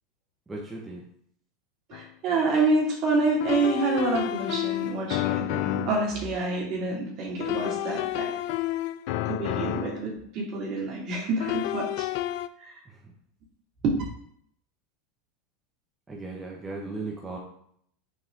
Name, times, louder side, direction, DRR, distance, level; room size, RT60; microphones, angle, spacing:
voice 1, 0.5-1.0 12.9-13.1 16.1-17.4, right 3 dB, 15° right, -2 dB, 1.3 m, -37 dB
sound 1, 1.9-2.0 3.4-6.1 7.4-10.1 11.4-12.5, left 15 dB, 55° left, 0.3 m, -30 dB
voice 2, 1.9-8.3 9.3-12.1 12.6-12.7 13.8-14.0, right 3 dB, 50° right, -2 dB, 2.5 m, -27 dB
7.2 x 4.2 x 3.6 m, 0.67 s
figure-of-eight pair, 85°, 0 cm